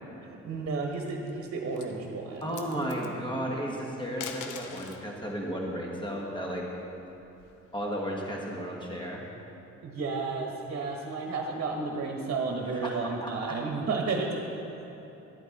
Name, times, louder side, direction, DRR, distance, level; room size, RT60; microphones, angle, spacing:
voice 1, 0.2-2.6 3.2-3.4 9.8-14.6, right 4 dB, 50° right, 1 dB, 1.2 m, -32 dB
sound 1, 0.8-1.3 1.7-1.9 2.4-3.1 4.0-5.1 6.5-7.7, left 7 dB, 85° left, 0.8 m, -42 dB
voice 2, 2.4-6.6 7.7-9.2 12.8-13.5, equal, 15° left, -2 dB, 1.8 m, -34 dB
12.0 x 8.4 x 4.1 m, 3.0 s
cardioid pair, 90°, 30 cm